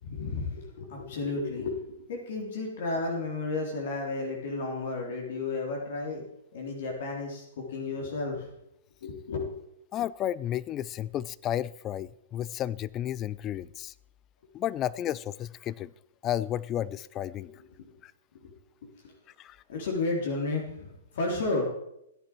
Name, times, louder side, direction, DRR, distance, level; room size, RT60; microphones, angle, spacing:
voice 1, 0.0-6.2 6.5-8.5 9.0-9.6 17.4-17.9 18.3-18.5 19.0-19.1 19.7-21.7, left 3 dB, 60° left, 0 dB, 3.4 m, -33 dB
voice 2, 9.9-13.9 14.5-15.9 16.2-17.5 18.0-18.1 19.4-19.6, left 11 dB, 30° left, 20 dB, 0.4 m, -32 dB
16.0 x 10.5 x 4.6 m, 0.81 s
hypercardioid pair, 115°, 0 cm